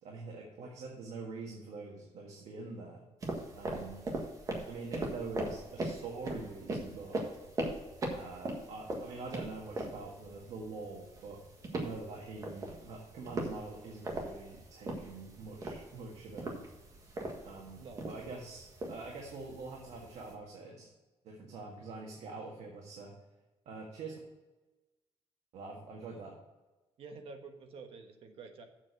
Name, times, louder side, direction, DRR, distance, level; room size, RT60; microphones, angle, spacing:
voice 1, 0.0-3.0 3.5-4.0 4.7-7.2 8.1-11.4 11.7-16.6 17.4-20.9 21.2-23.1 23.7-24.2 25.5-26.3, right 3 dB, 75° right, -1 dB, 1.7 m, -45 dB
sound 1, 3.2-20.3, right 2 dB, 30° right, 1.6 m, -41 dB
voice 2, 3.6-3.9 17.8-18.1 27.0-28.6, right 4 dB, 60° right, 5 dB, 1.3 m, -49 dB
7.4 x 7.0 x 6.2 m, 1.1 s
cardioid pair, 175°, 11 cm